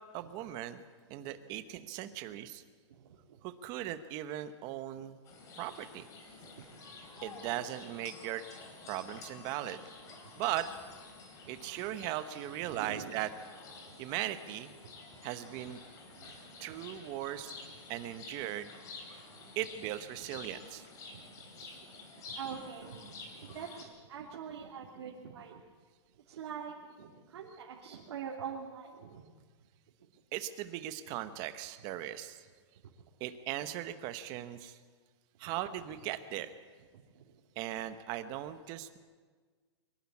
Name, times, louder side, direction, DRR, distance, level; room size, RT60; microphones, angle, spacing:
voice 1, 0.1-0.8 1.1-2.6 3.4-5.2 5.6-6.1 7.2-8.4 8.9-9.8 10.4-10.7 11.5-13.3 14.0-14.7 15.2-15.8 16.6-17.5 17.9-18.7 19.5-20.8 30.3-32.4 33.2-34.8 35.4-36.5 37.6-39.0, right 13 dB, 25° right, 11 dB, 1.0 m, -38 dB
voice 2, 2.9-3.4 5.6-5.7 6.4-6.6 11.4-11.5 12.6-13.1 13.9-14.0 15.1-15.2 16.1-16.3 17.6-17.7 19.4-19.5 21.1-21.9 22.3-25.6 26.3-29.2 31.1-31.2 35.4-35.5 37.1-37.3, right 7 dB, 65° right, -3 dB, 3.0 m, -45 dB
sound 1, 5.3-23.8, left 3 dB, 20° left, 3.0 m, -50 dB
23.5 x 12.0 x 9.7 m, 1.5 s
hypercardioid pair, 165°, 15 cm